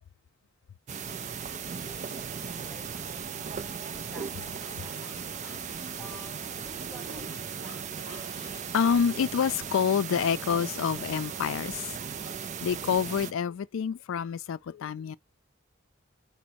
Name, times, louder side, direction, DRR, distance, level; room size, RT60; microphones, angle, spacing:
sound 1, 0.9-13.3, right 7 dB, 35° right, 0.4 m, -37 dB
voice 1, 1.8-3.7 4.0-5.4 6.0-7.6, equal, 5° left, 0.7 m, -52 dB
voice 2, 5.4-6.0 7.6-12.3 12.6-15.2, left 7 dB, 75° left, 0.4 m, -29 dB
5.1 x 2.1 x 4.6 m
head